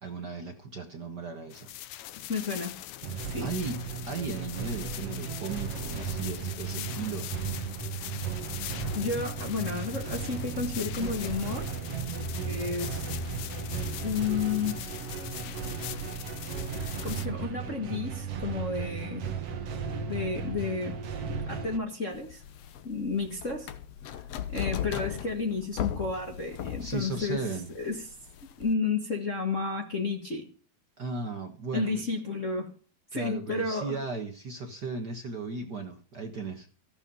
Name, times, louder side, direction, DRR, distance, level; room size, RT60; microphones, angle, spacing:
voice 1, 0.0-1.7 3.1-3.8 4.1-7.3 26.8-27.7 31.0-32.0 33.1-36.7, right 4 dB, 75° right, 0.9 m, -36 dB
sound 1, 1.5-17.3, left 14 dB, 85° left, 1.6 m, -42 dB
voice 2, 2.2-2.8 3.2-3.5 8.9-11.7 12.5-13.0 14.0-14.8 16.7-19.3 20.1-21.0 21.3-22.4 22.8-23.7 24.1-24.2 24.5-27.4 27.7-28.1 28.6-30.5 31.7-32.7 33.1-34.0, left 4 dB, 40° left, 1.1 m, -32 dB
sound 2, 3.0-21.8, right 5 dB, 50° right, 2.3 m, -35 dB
sound 3, 22.1-28.7, left 10 dB, 70° left, 1.5 m, -37 dB
14.5 x 9.9 x 5.5 m
omnidirectional pair, 4.3 m